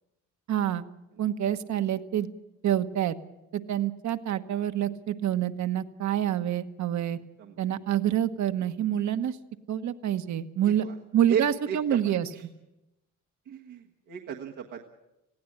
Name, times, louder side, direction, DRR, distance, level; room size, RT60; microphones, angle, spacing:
voice 1, 0.5-0.8 1.2-2.3 2.6-3.2 3.5-7.2 7.6-9.4 9.7-10.9 11.1-12.3, right 10 dB, 70° right, 10 dB, 1.2 m, -27 dB
voice 2, 10.6-11.0 11.3-12.0 12.3-12.4 13.5-14.9, right 8 dB, 90° right, 0 dB, 1.6 m, -34 dB
20.0 x 16.0 x 8.7 m, 0.93 s
cardioid pair, 90°, 30 cm